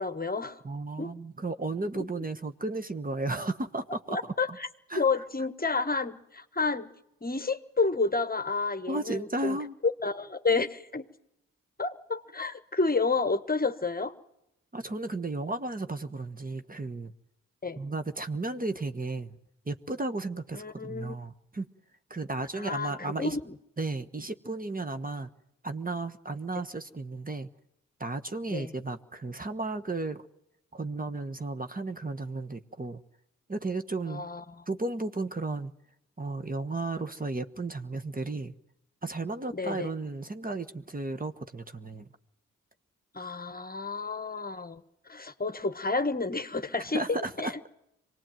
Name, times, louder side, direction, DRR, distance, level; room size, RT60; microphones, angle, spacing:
voice 1, 0.0-0.6 1.0-1.1 1.9-2.0 4.1-4.7 5.0-6.9 7.2-9.6 10.0-11.1 11.8-14.1 17.6-17.8 20.5-21.1 22.6-23.4 28.5-28.7 34.1-34.4 39.5-39.9 43.1-44.8 45.1-47.5, left 4 dB, 25° left, 11 dB, 1.3 m, -30 dB
voice 2, 0.6-4.2 4.5-4.6 4.9-5.2 8.9-9.8 14.7-17.1 17.8-19.4 19.7-21.7 22.1-23.4 23.8-25.3 25.6-27.5 28.0-30.3 30.7-33.0 33.5-34.3 34.7-35.7 36.2-38.5 39.0-42.1 46.9-47.7, right 2 dB, 25° right, 8 dB, 1.3 m, -34 dB
24.0 x 19.0 x 9.1 m, 0.84 s
supercardioid pair, 45°, 33 cm